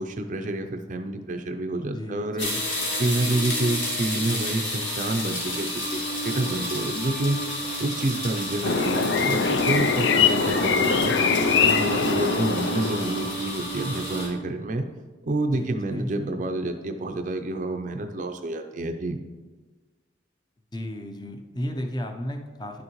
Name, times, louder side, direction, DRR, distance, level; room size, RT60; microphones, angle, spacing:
voice 1, 0.0-2.5 3.0-6.0 6.2-7.4 7.8-11.2 11.6-14.8 15.2-19.2, right 2 dB, 40° right, 5 dB, 0.5 m, -28 dB
voice 2, 1.9-2.6 15.5-16.1 20.7-22.8, equal, 20° left, 5 dB, 0.6 m, -33 dB
coffee grinder, 2.4-14.3, equal, 85° left, 2.4 m, -30 dB
sound 1, 8.6-13.5, left 5 dB, 65° left, 0.4 m, -23 dB
10.5 x 6.3 x 3.0 m, 1.3 s
head